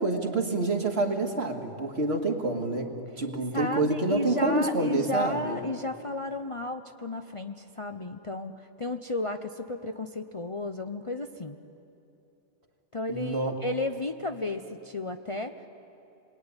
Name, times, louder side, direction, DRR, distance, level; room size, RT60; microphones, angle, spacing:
voice 1, 0.0-5.6 13.1-13.5, right 2 dB, 55° right, 3 dB, 2.4 m, -27 dB
voice 2, 3.5-11.6 12.9-15.7, left 2 dB, 30° left, 6 dB, 0.7 m, -33 dB
28.5 x 21.5 x 9.8 m, 2.9 s
omnidirectional pair, 1.3 m